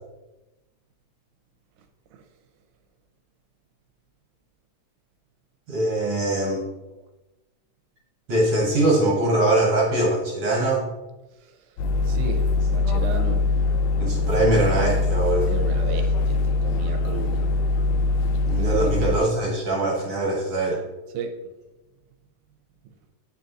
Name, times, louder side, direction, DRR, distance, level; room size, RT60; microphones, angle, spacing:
voice 1, 5.7-6.6 8.3-10.9 14.0-15.5 18.4-20.8, right 2 dB, 60° right, -3 dB, 1.7 m, -22 dB
sound 1, 11.8-19.2, left 3 dB, 80° left, 1.6 m, -22 dB
voice 2, 12.1-13.4 15.5-17.5 18.6-19.1 21.1-21.3, right 5 dB, 85° right, 4 dB, 2.1 m, -34 dB
9.3 x 4.1 x 2.6 m, 1.1 s
omnidirectional pair, 3.4 m